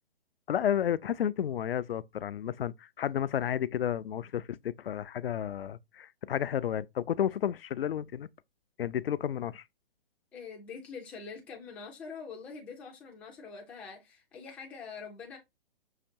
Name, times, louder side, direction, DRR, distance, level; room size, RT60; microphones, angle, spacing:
voice 1, 0.5-8.3 8.8-9.6, left 9 dB, 75° left, 0.5 m, -32 dB
voice 2, 10.3-15.4, left 5 dB, 5° left, 0.3 m, -44 dB
5.8 x 2.8 x 2.6 m
hypercardioid pair, 130°, 30 cm